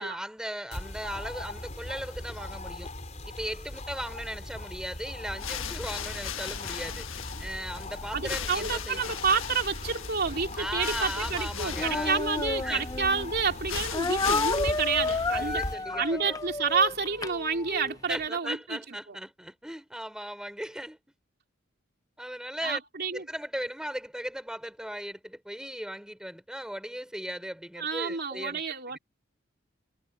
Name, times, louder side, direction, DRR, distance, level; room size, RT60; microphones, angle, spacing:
voice 1, 0.0-2.9 3.3-7.1 7.4-9.0 10.6-12.2 12.6-12.8 15.3-16.4 18.1-21.0 22.2-22.8 23.1-29.0, equal, 5° right, 5.3 m, -37 dB
sound 1, 0.7-15.7, left 1 dB, 35° left, 3.8 m, -40 dB
sound 2, 5.2-15.9, left 7 dB, 80° left, 1.4 m, -38 dB
voice 2, 8.1-15.6 16.0-19.2 22.6-23.3 27.8-29.0, right 5 dB, 50° right, 3.1 m, -29 dB
Speech, 11.7-13.3 13.9-18.0, left 3 dB, 20° left, 0.6 m, -31 dB
head